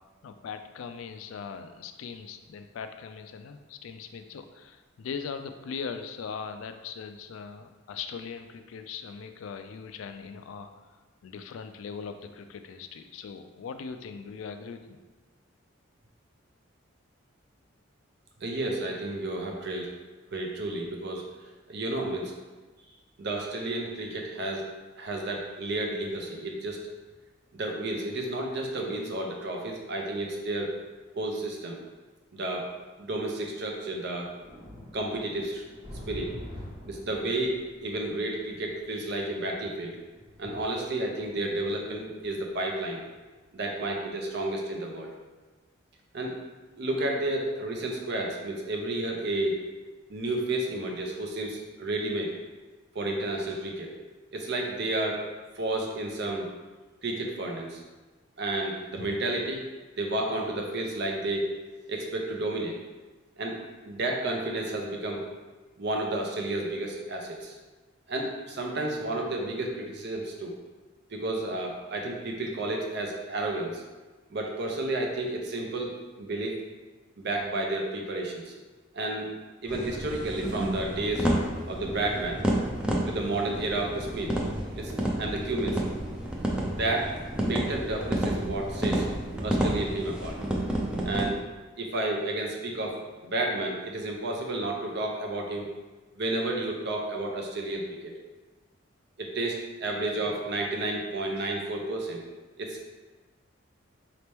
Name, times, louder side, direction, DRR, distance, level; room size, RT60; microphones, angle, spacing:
voice 1, 0.2-10.7 11.2-15.0, left 6 dB, 75° left, 8 dB, 0.3 m, -40 dB
voice 2, 18.4-19.9 20.3-21.2 21.7-22.3 23.2-24.6 25.0-26.9 27.5-30.8 31.2-31.8 32.3-32.7 33.0-34.3 34.9-35.6 36.1-36.3 36.8-40.0 40.4-43.0 43.5-45.1 46.1-46.3 46.8-49.6 50.1-52.3 52.9-53.9 54.3-55.3 55.6-56.5 57.0-57.8 58.4-59.7 60.0-61.6 61.9-62.8 63.4-63.6 63.8-65.3 65.8-67.6 68.1-70.5 71.1-73.8 74.3-76.6 77.2-78.5 78.9-79.3 79.6-81.4 81.7-82.4 83.0-84.4 84.7-84.9 85.2-85.8 86.7-89.1 89.4-90.4 91.0-91.4 91.8-93.0 93.2-95.7 96.2-98.1 99.2-102.2 102.6-102.8, right 2 dB, 55° right, 1 dB, 0.6 m, -31 dB
sound 1, 34.1-43.9 44.3-44.4, left 1 dB, 30° right, 1.1 m, -47 dB
sound 2, 79.7-91.3, right 1 dB, 5° right, 0.4 m, -30 dB
4.2 x 2.9 x 3.4 m, 1.3 s
head